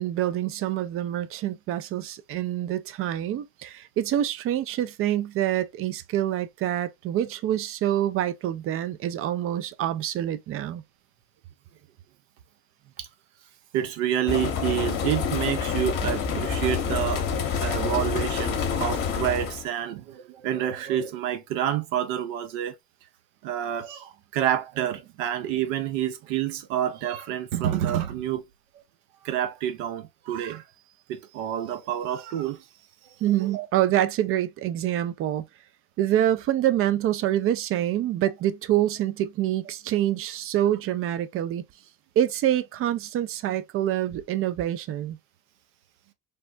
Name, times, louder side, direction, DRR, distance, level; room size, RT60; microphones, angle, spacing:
voice 1, 0.0-10.8 33.2-35.4 36.0-41.6 42.2-45.2, right 12 dB, 35° right, 0.4 m, -26 dB
voice 2, 13.7-17.3 17.6-22.7 23.4-28.5 29.2-30.6 31.1-32.6 33.5-33.7, right 11 dB, 65° right, 0.7 m, -28 dB
sound 1, 14.3-19.7, left 6 dB, 50° left, 0.9 m, -27 dB
3.4 x 2.0 x 2.4 m
hypercardioid pair, 80°, 41 cm